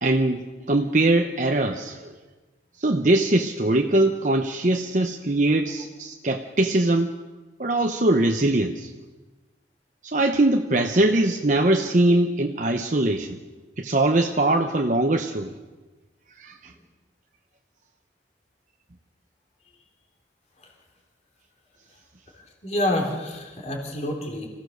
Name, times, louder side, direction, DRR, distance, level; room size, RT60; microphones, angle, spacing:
voice 1, 0.0-2.1 2.8-7.1 7.6-8.9 10.0-13.4 13.8-15.5 16.4-16.7, right 2 dB, 45° right, 4 dB, 0.9 m, -22 dB
voice 2, 22.3-24.5, left 1 dB, 35° left, 2 dB, 3.6 m, -28 dB
26.5 x 16.5 x 6.6 m, 1.2 s
head